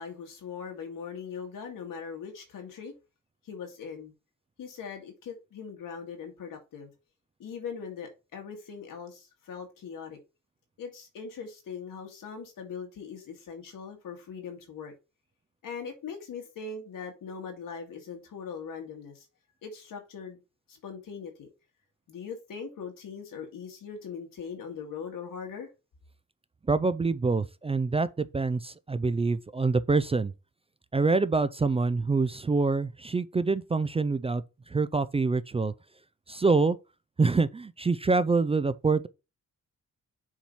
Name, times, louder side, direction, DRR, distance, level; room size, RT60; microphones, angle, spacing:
voice 1, 0.0-2.9 3.4-4.1 4.6-6.9 7.4-10.2 10.8-14.9 15.6-19.3 19.6-20.4 20.7-21.5 22.1-25.7, left 6 dB, 90° left, 2.0 m, -40 dB
voice 2, 26.7-30.3 30.9-35.7 36.3-36.8 37.2-39.1, right 3 dB, 20° right, 0.3 m, -26 dB
7.2 x 3.0 x 5.4 m
cardioid pair, 110°, 32 cm